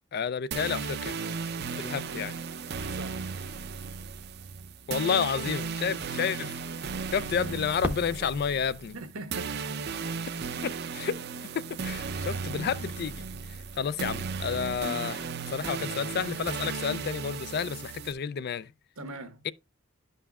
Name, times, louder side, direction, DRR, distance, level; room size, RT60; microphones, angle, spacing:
voice 1, 0.1-1.2 1.6-2.3 4.9-6.5 7.1-9.0 10.6-11.2 11.5-13.2 13.8-18.7 19.4-19.5, left 7 dB, 50° left, 0.3 m, -30 dB
sound 1, 0.5-18.1, right 5 dB, 50° right, 0.5 m, -35 dB
voice 2, 2.9-3.4 5.8-6.3 8.9-10.0 19.0-19.4, right 2 dB, 85° right, 1.2 m, -42 dB
Fireworks, 7.8-10.6 11.3-11.4 12.0-12.5 14.4-14.5, equal, 10° right, 0.7 m, -39 dB
11.0 x 5.5 x 2.3 m
head